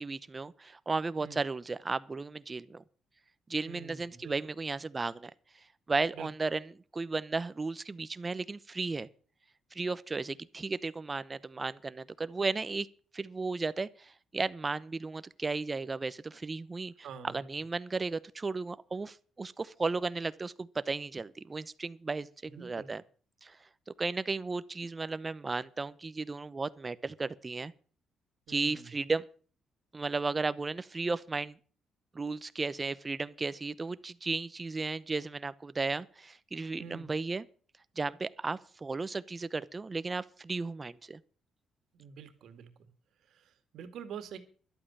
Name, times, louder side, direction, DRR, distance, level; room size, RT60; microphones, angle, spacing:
voice 1, 0.0-2.8 3.5-5.3 5.9-9.1 9.7-12.9 13.1-23.0 23.4-23.6 23.9-27.7 28.5-29.2 29.9-31.6 32.1-37.5 38.0-41.2, right 3 dB, 25° right, 0.8 m, -34 dB
voice 2, 3.7-4.3 6.1-6.3 17.0-17.5 22.4-22.9 28.5-28.9 36.8-37.1 41.9-42.7 43.3-44.4, right 7 dB, 75° right, 2.1 m, -46 dB
12.0 x 8.6 x 8.8 m
cardioid pair, 90°, 0 cm